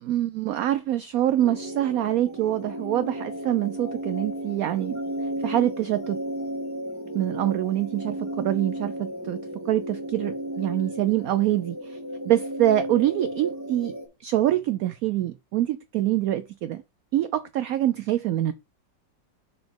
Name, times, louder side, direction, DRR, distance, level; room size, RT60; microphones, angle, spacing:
voice 1, 0.0-5.0 5.4-6.2 7.1-9.4 9.7-12.0 12.2-13.9 14.2-16.8 17.1-18.5, right 13 dB, 70° right, 0.8 m, -25 dB
sound 1, 1.4-14.1, right 1 dB, 10° right, 1.6 m, -34 dB
5.8 x 4.2 x 4.8 m
omnidirectional pair, 1.9 m